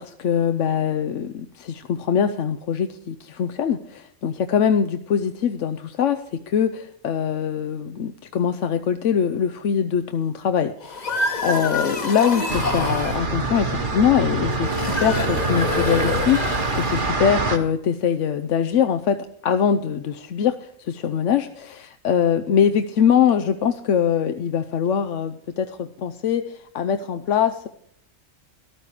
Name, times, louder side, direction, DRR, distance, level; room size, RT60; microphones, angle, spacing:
voice 1, 0.0-27.7, left 8 dB, 70° left, 8 dB, 1.0 m, -23 dB
sound 1, 10.8-13.2 14.6-17.1, left 2 dB, 35° left, 1.2 m, -27 dB
sound 2, 12.5-17.6, right 3 dB, 40° right, 1.4 m, -25 dB
13.5 x 12.5 x 4.8 m, 0.66 s
omnidirectional pair, 1.4 m